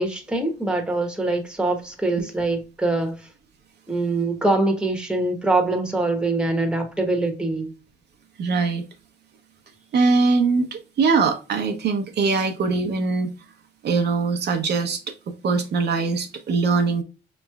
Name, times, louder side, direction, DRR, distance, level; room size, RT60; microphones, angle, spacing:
voice 1, 0.0-3.2 3.9-7.7, right 2 dB, 5° right, 1.0 m, -23 dB
voice 2, 8.4-8.8 9.9-13.3 13.8-15.0 15.4-17.0, right 4 dB, 55° right, 0.7 m, -22 dB
5.1 x 3.0 x 2.2 m
cardioid pair, 90°, 20 cm